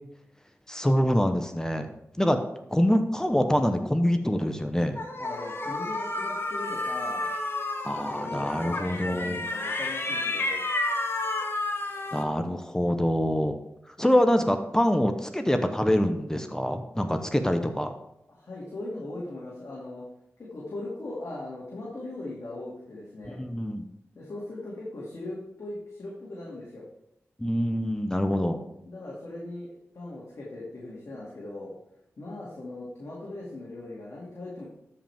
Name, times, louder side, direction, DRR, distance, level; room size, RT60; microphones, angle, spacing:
voice 1, 0.7-1.9 2.2-2.4 2.7-5.0 7.8-9.4 12.1-13.6 14.0-17.9 23.3-23.9 27.4-28.6, equal, 10° left, 7 dB, 0.8 m, -25 dB
sound 1, 5.0-12.2, left 2 dB, 45° left, 1.4 m, -31 dB
voice 2, 5.2-7.3 8.0-10.6 17.0-17.2 18.3-20.0 20.4-23.4 24.1-26.9 28.9-31.7 32.2-34.6, left 2 dB, 65° left, -6 dB, 2.4 m, -39 dB
13.0 x 5.1 x 3.6 m, 0.82 s
cardioid pair, 55°, 5 cm